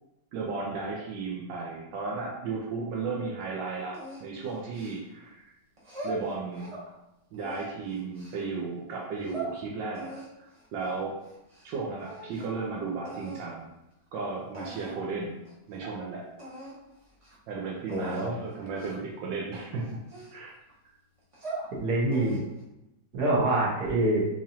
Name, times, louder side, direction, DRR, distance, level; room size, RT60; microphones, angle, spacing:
voice 1, 0.3-5.5 6.0-6.8 7.3-11.2 11.6-13.7 14.1-15.4 15.7-16.2 17.5-20.0 20.3-20.6, right 4 dB, 90° right, -3 dB, 1.3 m, -34 dB
sound 1, 3.9-5.3 5.8-6.9 7.3-8.4 9.0-9.5 9.9-11.7 12.0-12.6 13.0-13.5 14.1-14.2 14.5-15.1 15.4-15.5 15.8-16.0 16.4-16.8 17.1-17.3 17.9-18.3 18.8-19.1 19.5-20.7 21.2-21.7 22.1-22.6, right 2 dB, 35° right, 0.5 m, -41 dB
voice 2, 17.9-18.3 21.7-22.4 23.1-24.2, right 2 dB, 65° right, -4 dB, 1.6 m, -26 dB
3.8 x 3.0 x 2.7 m, 0.90 s
omnidirectional pair, 1.9 m